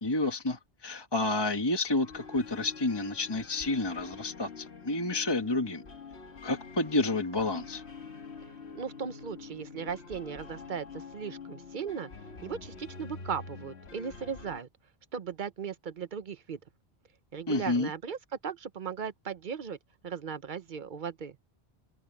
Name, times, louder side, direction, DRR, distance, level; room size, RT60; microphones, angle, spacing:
voice 1, 0.0-5.8 6.4-7.8 17.5-17.9, left 2 dB, 25° left, 1.5 m, -30 dB
sound 1, 2.0-14.6, left 5 dB, 85° left, 1.8 m, -46 dB
voice 2, 8.7-12.1 12.4-14.7 15.1-16.6 17.3-19.8 20.0-21.4, right 6 dB, 50° right, 1.0 m, -37 dB
omnidirectional pair, 1.1 m